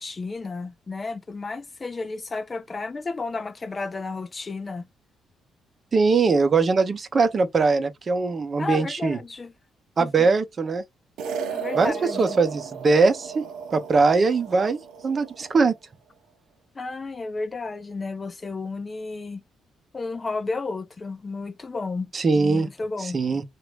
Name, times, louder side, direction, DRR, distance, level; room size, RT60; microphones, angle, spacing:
voice 1, 0.0-4.9 8.6-9.5 10.0-10.1 11.5-12.4 16.8-19.4 19.9-23.2, left 3 dB, 30° left, 0.5 m, -32 dB
voice 2, 5.9-9.2 10.0-10.8 11.8-13.4 13.7-15.7 22.1-22.7 23.0-23.4, right 4 dB, 40° right, 0.7 m, -21 dB
sound 1, 11.2-15.6, right 6 dB, 80° right, 0.7 m, -34 dB
2.9 x 2.5 x 3.3 m
cardioid pair, 90°, 0 cm